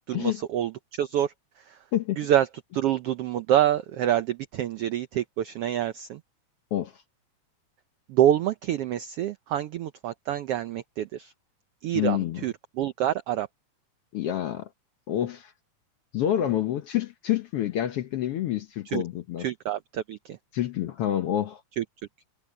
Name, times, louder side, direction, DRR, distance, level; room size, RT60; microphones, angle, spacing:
voice 1, 0.0-1.3 1.7-1.8 2.2-2.5 2.7-6.2 8.1-11.3 11.8-13.5 18.9-19.0 19.4-20.4 21.8-21.9, right 11 dB, 85° right, 1.3 m, -26 dB
voice 2, 6.7-7.0 11.9-12.4 14.1-14.7 15.1-15.5 16.1-19.5 20.5-21.6, left 12 dB, 65° left, 1.5 m, -28 dB
omnidirectional pair, 3.5 m